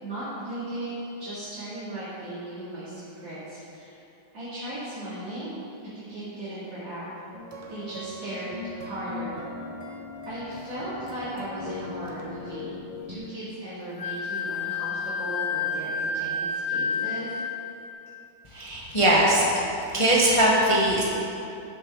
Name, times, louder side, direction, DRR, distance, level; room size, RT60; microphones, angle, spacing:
voice 1, 0.0-4.0 4.3-5.5 5.9-7.0 7.7-8.6 8.8-9.4 10.2-12.7 13.1-17.4, right 1 dB, 60° right, -13 dB, 3.3 m, -36 dB
sound 1, 7.3-13.2, left 2 dB, 25° right, 0.9 m, -39 dB
Wind instrument woodwind instrument, 14.0-17.7, left 4 dB, 70° left, 0.5 m, -30 dB
voice 2, 18.5-19.4 19.9-21.0, right 1 dB, 20° left, -5 dB, 0.9 m, -20 dB
13.0 x 6.9 x 3.8 m, 2.8 s
omnidirectional pair, 2.1 m